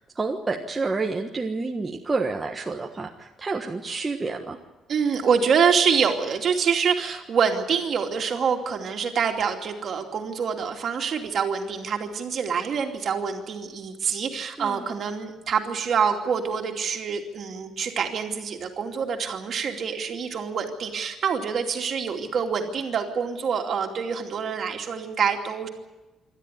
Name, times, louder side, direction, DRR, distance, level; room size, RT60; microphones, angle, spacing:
voice 1, 0.1-4.6 14.6-14.9, right 3 dB, 15° right, 1 dB, 1.3 m, -29 dB
voice 2, 4.9-25.7, right 6 dB, 45° right, 4 dB, 2.6 m, -26 dB
27.0 x 13.0 x 9.8 m, 1.1 s
cardioid pair, 175°, 0 cm